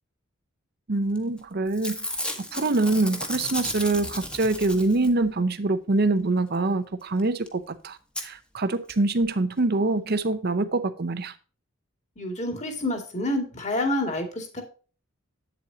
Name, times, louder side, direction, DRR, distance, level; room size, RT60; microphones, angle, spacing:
voice 1, 0.9-2.0 2.5-11.3, right 2 dB, 50° right, 0.7 m, -25 dB
Packing tape duct tape / Tearing, 1.2-1.4 1.7-5.3 7.2-7.3 7.5-7.6 8.2-8.3 8.9-9.0 9.2-9.3, left 1 dB, 5° left, 1.2 m, -33 dB
voice 2, 12.2-14.6, left 1 dB, 35° left, 2.3 m, -28 dB
8.9 x 7.8 x 2.8 m
head